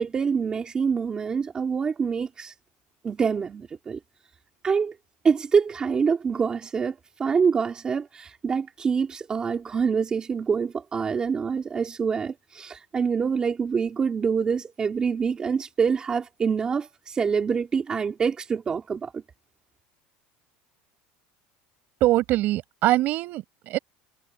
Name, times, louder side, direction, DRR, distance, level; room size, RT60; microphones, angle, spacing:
voice 1, 0.0-2.5 3.0-4.0 4.6-4.9 5.2-19.2, right 6 dB, 20° right, 3.0 m, -26 dB
voice 2, 22.0-23.8, right 16 dB, 45° right, 6.5 m, -23 dB
cardioid pair, 165°, 4 cm